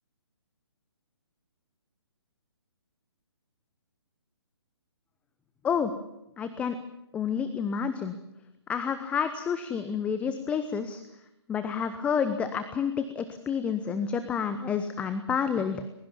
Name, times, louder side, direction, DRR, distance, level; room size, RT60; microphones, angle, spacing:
voice 1, 6.4-6.8 7.1-8.2 8.7-11.0 11.5-15.8, left 7 dB, 10° left, 10 dB, 0.9 m, -29 dB
22.0 x 21.5 x 7.3 m, 0.86 s
figure-of-eight pair, 135°, 14 cm